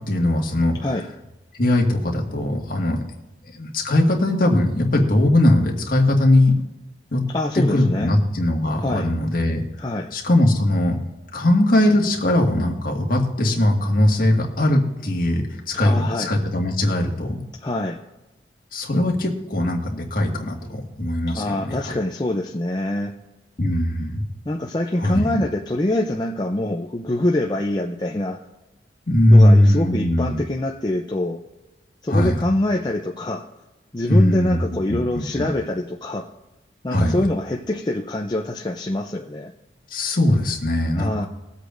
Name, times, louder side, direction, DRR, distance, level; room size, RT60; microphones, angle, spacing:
voice 1, 0.1-0.9 1.5-3.0 3.5-6.6 7.1-7.2 7.7-9.6 10.1-10.9 11.3-17.4 18.7-21.9 23.6-24.2 25.0-25.4 29.1-30.4 32.1-32.4 34.1-34.6 34.9-35.5 36.9-37.2 39.9-41.3, left 1 dB, 50° left, 0 dB, 1.8 m, -19 dB
voice 2, 7.3-8.1 8.8-9.1 9.8-10.1 15.8-16.3 17.6-18.0 21.3-23.1 24.4-28.4 29.3-31.4 32.0-33.5 33.9-36.3 36.8-39.5 40.9-41.3, left 1 dB, 25° left, 2 dB, 0.5 m, -24 dB
21.0 x 8.1 x 2.6 m, 1.1 s
head